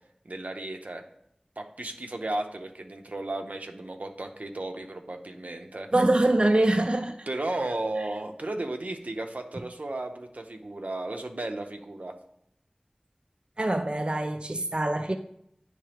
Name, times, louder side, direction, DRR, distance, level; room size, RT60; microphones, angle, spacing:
voice 1, 0.2-1.0 1.6-5.9 7.3-12.2, right 2 dB, 85° right, 0.6 m, -34 dB
voice 2, 5.9-7.2 13.6-15.2, right 1 dB, 40° right, 0.4 m, -24 dB
9.6 x 3.2 x 3.4 m
wide cardioid pair, 40°, 3 cm